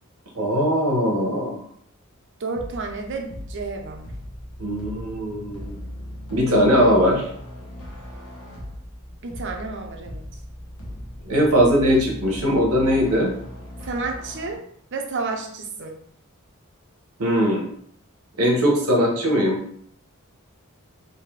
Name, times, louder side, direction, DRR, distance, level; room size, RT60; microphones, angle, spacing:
voice 1, 0.4-1.6 4.6-5.7 6.3-7.2 11.2-13.3 17.2-17.7 18.4-19.6, equal, 90° right, 0 dB, 1.0 m, -20 dB
voice 2, 2.4-4.1 9.2-10.3 13.8-14.6 14.9-16.0, right 3 dB, 60° right, 3 dB, 0.6 m, -31 dB
sound 1, 2.5-14.5, left 1 dB, 80° left, 1.2 m, -38 dB
3.7 x 2.7 x 3.2 m, 0.64 s
head